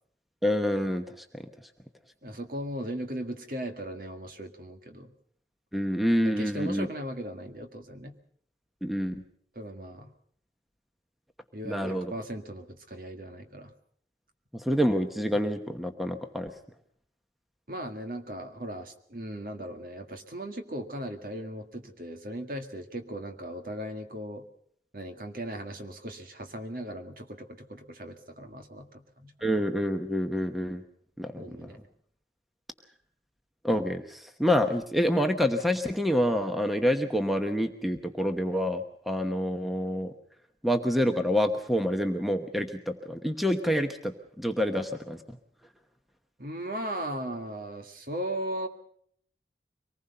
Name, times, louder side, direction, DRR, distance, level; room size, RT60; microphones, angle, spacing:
voice 1, 0.4-1.4 5.7-6.9 8.8-9.2 11.6-12.1 14.5-16.5 29.4-30.8 31.2-31.7 33.6-40.1 40.6-45.2, equal, ahead, 5 dB, 1.1 m, -27 dB
voice 2, 2.2-5.1 6.2-8.1 9.6-10.1 11.5-13.7 17.7-24.4 24.9-29.5 31.4-31.8 46.4-48.7, right 1 dB, 50° right, 5 dB, 1.9 m, -37 dB
24.5 x 19.5 x 5.6 m, 0.64 s
head